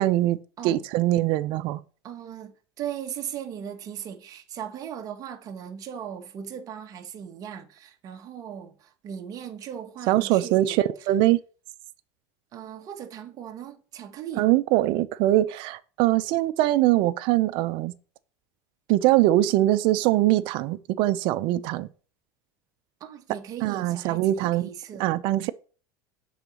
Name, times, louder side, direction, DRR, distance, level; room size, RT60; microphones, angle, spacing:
voice 1, 0.0-0.4 0.6-1.8 10.1-11.4 14.4-17.9 18.9-21.9 23.6-24.7 25.0-25.5, right 15 dB, 55° right, 0.6 m, -22 dB
voice 2, 2.0-10.8 12.5-14.5 23.0-25.1, right 9 dB, 40° right, 1.1 m, -38 dB
7.1 x 3.9 x 6.2 m
supercardioid pair, 135°, 10 cm